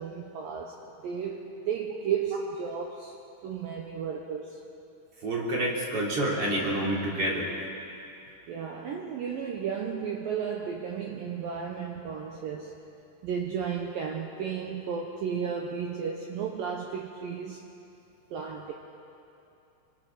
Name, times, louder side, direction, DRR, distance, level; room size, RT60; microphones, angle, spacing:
voice 1, 0.0-3.1 3.4-4.6 8.5-12.8 13.2-17.6 18.3-18.7, right 7 dB, 75° right, 1 dB, 2.2 m, -33 dB
voice 2, 5.2-7.5, right 1 dB, 35° right, -4 dB, 4.2 m, -28 dB
27.0 x 24.5 x 4.9 m, 2.8 s
omnidirectional pair, 5.3 m